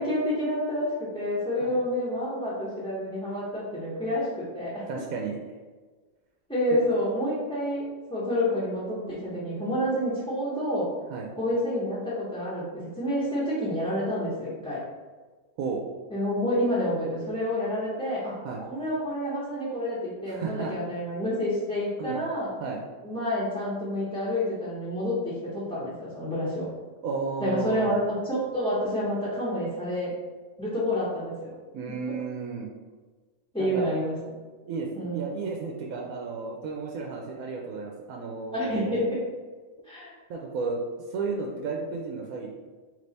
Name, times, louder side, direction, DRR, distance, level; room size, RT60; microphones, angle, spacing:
voice 1, 0.0-4.9 6.5-10.9 11.4-14.8 16.1-18.4 18.7-22.5 23.0-26.7 27.4-30.1 30.6-31.5 33.5-34.1 34.9-35.2 38.5-39.2 39.8-40.1, equal, 5° left, -10 dB, 0.8 m, -28 dB
voice 2, 4.9-5.4 6.7-6.8 11.1-11.3 15.6-15.8 18.4-18.6 20.3-20.7 22.0-22.2 22.6-22.8 27.0-28.0 31.7-32.7 33.6-33.9 34.6-39.1 39.8-39.9 40.3-40.8 41.1-42.5, right 4 dB, 85° right, 0 dB, 1.0 m, -33 dB
3.3 x 3.1 x 4.0 m, 1.4 s
omnidirectional pair, 1.4 m